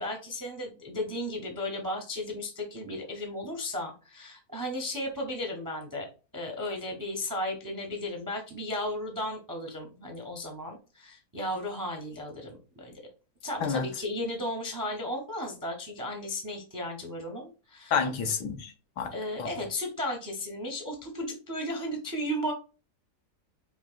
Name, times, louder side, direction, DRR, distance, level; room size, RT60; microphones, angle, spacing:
voice 1, 0.0-6.1 6.3-13.0 13.4-18.0 19.1-22.5, left 1 dB, 25° right, 0.4 m, -35 dB
voice 2, 17.9-19.1 19.4-19.5, left 6 dB, 85° left, 1.4 m, -29 dB
4.8 x 3.1 x 2.4 m
omnidirectional pair, 1.8 m